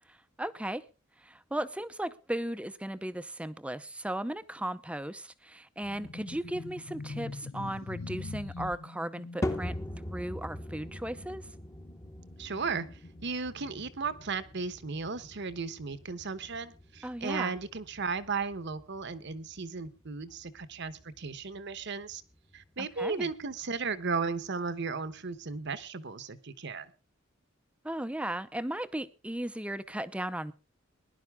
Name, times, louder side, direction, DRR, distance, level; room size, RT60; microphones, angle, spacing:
voice 1, 0.1-0.8 1.2-11.4 17.0-17.6 22.8-23.3 27.8-30.5, right 1 dB, 5° right, 13 dB, 0.6 m, -36 dB
sound 1, 5.8-15.8 16.1-16.3 17.1-18.1, left 3 dB, 75° left, 0.7 m, -45 dB
sound 2, 9.4-25.9, left 1 dB, 15° left, 1.0 m, -43 dB
voice 2, 12.4-12.9 13.2-22.2 22.5-26.9, right 4 dB, 60° right, 13 dB, 1.1 m, -35 dB
20.0 x 11.0 x 3.6 m, 0.32 s
head